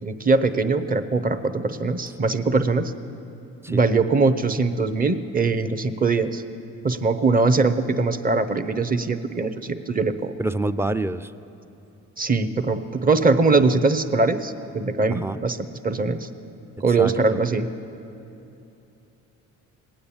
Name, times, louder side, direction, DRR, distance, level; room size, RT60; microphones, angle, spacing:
voice 1, 0.0-2.9 3.7-6.4 6.8-10.3 12.2-15.6 15.8-16.3 16.8-17.7, right 3 dB, 30° right, 9 dB, 0.8 m, -21 dB
voice 2, 10.4-11.3 15.1-15.4 17.0-17.4, right 2 dB, 10° right, 12 dB, 0.4 m, -27 dB
18.5 x 8.7 x 8.7 m, 2.8 s
cardioid pair, 90°, 30 cm